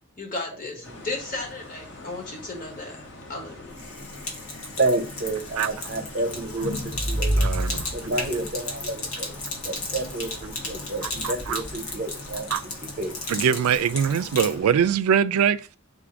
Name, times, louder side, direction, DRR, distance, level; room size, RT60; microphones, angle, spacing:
voice 1, 0.2-3.7, left 3 dB, 40° left, 1.1 m, -35 dB
sound 1, 0.8-15.0, left 1 dB, 55° left, 0.8 m, -43 dB
Sink (filling or washing), 3.7-14.6, left 2 dB, 80° left, 1.1 m, -35 dB
voice 2, 4.8-7.4 7.9-9.3 9.6-13.1, right 2 dB, 45° right, 0.7 m, -30 dB
sound 2, 6.3-8.6, equal, 5° left, 0.5 m, -27 dB
voice 3, 7.4-7.9 11.0-11.6 12.5-12.6 13.3-15.8, right 8 dB, 90° right, 0.3 m, -23 dB
3.7 x 2.6 x 4.7 m
head